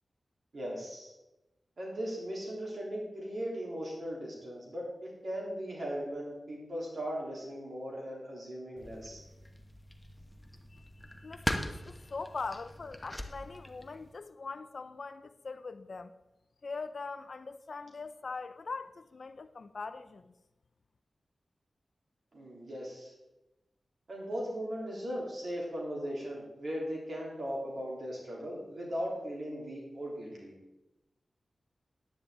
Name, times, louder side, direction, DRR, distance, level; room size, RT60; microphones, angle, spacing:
voice 1, 0.5-1.1 1.8-9.2 22.3-23.1 24.1-30.5, equal, 60° right, 3.6 m, -38 dB
sound 1, 8.8-14.1, left 1 dB, 10° left, 1.2 m, -41 dB
voice 2, 10.7-16.1 16.6-20.3, left 4 dB, 60° left, 0.5 m, -42 dB
10.0 x 9.9 x 3.9 m
cardioid pair, 60°, 0 cm